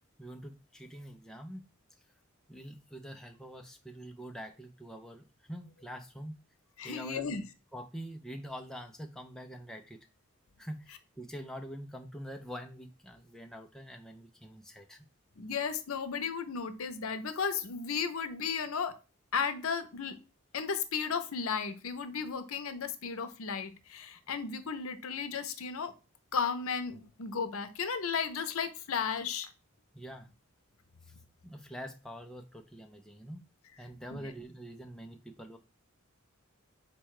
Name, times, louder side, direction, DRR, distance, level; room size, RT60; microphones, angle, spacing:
voice 1, 0.2-1.6 2.5-6.4 6.8-7.3 7.7-10.0 10.6-15.0 29.9-30.3 31.1-31.2 31.4-33.4 33.8-35.6, equal, 5° left, 4 dB, 0.4 m, -45 dB
voice 2, 6.8-7.4 15.4-18.9 19.3-20.2 20.5-25.9 26.3-29.5 34.1-34.2, left 6 dB, 80° left, 9 dB, 0.6 m, -34 dB
4.3 x 2.2 x 4.7 m, 0.30 s
head